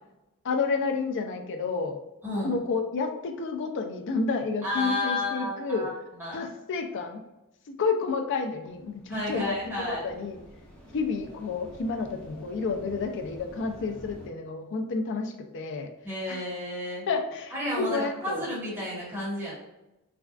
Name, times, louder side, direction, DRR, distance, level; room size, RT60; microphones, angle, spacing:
voice 1, 0.4-2.0 2.4-5.9 6.3-7.2 7.7-9.5 9.9-10.4 10.9-15.9 16.3-16.4 17.1-18.5, left 4 dB, 55° left, 5 dB, 0.4 m, -30 dB
voice 2, 2.2-2.6 4.6-5.9 6.2-6.4 9.1-10.0 16.0-17.0 17.5-19.5, left 1 dB, 10° right, -8 dB, 1.3 m, -31 dB
sound 1, 8.6-14.3, equal, 5° left, 0.6 m, -48 dB
3.3 x 2.3 x 2.4 m, 0.96 s
head